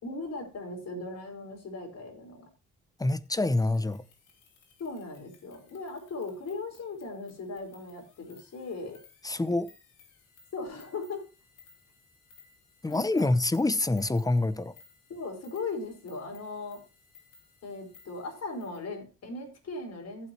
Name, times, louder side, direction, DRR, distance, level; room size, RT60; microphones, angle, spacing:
voice 1, 0.0-2.5 4.8-9.0 10.5-11.3 12.9-13.3 15.1-16.8 17.6-20.3, left 3 dB, 55° left, 4.7 m, -38 dB
voice 2, 3.0-4.0 9.2-9.7 12.8-14.7, left 2 dB, 10° left, 0.7 m, -26 dB
sound 1, 3.3-18.9, left 5 dB, 80° left, 4.1 m, -60 dB
15.0 x 7.7 x 3.0 m
cardioid pair, 90°, 30 cm